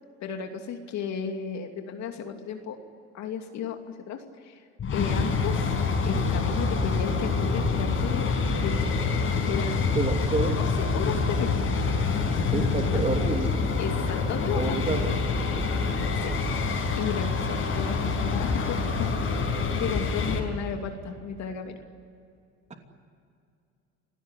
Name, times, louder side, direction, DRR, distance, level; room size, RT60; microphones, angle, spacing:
voice 1, 0.2-2.8 3.1-4.6 4.9-5.7 6.0-8.3 8.6-8.9 9.5-9.8 10.6-11.7 12.9-13.1 13.8-14.8 16.2-16.4 17.0-19.1 19.5-21.8, left 6 dB, 60° left, 4 dB, 2.7 m, -34 dB
sound 1, 4.8-20.4, left 4 dB, 40° left, 5.6 m, -26 dB
voice 2, 9.9-10.5 12.5-13.5 14.5-15.1, right 3 dB, 20° right, 4 dB, 2.9 m, -28 dB
29.0 x 17.5 x 9.9 m, 2.4 s
cardioid pair, 110°, 32 cm